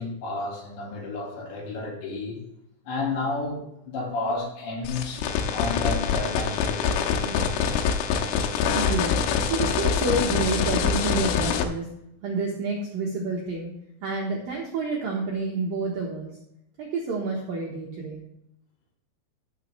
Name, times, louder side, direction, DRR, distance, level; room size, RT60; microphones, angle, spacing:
voice 1, 0.0-2.4 2.9-5.3 5.5-7.4, left 2 dB, 65° left, -3 dB, 4.4 m, -31 dB
sound 1, 4.8-11.6, left 7 dB, 85° left, 3.3 m, -25 dB
voice 2, 8.7-11.9 12.2-13.7 14.0-16.3 16.8-18.2, right 3 dB, 70° right, -2 dB, 2.2 m, -29 dB
14.0 x 6.2 x 3.3 m, 0.83 s
omnidirectional pair, 5.9 m